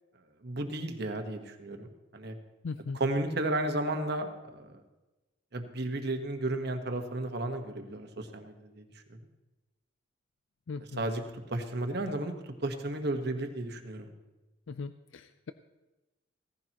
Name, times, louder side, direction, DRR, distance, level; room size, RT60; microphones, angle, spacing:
voice 1, 0.4-2.3 2.9-4.8 5.5-8.8 11.0-12.3 12.6-14.1, right 2 dB, 60° right, 5 dB, 1.3 m, -33 dB
voice 2, 2.6-3.0 10.7-11.0 14.7-15.5, left 4 dB, 80° left, 11 dB, 0.5 m, -39 dB
16.5 x 15.0 x 3.0 m, 1.1 s
head